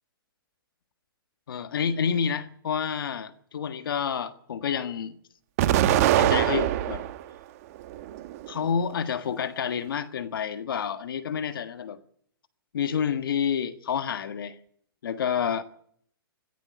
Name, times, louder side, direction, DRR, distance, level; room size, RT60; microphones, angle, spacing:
voice 1, 1.5-5.2 5.7-7.0 8.5-12.0 12.7-14.6 15.0-15.6, left 7 dB, 70° left, 1.7 m, -29 dB
Explosion, 5.6-7.2 7.8-8.6, right 13 dB, 40° right, 1.3 m, -23 dB
16.5 x 16.0 x 10.0 m
hypercardioid pair, 145°, 12 cm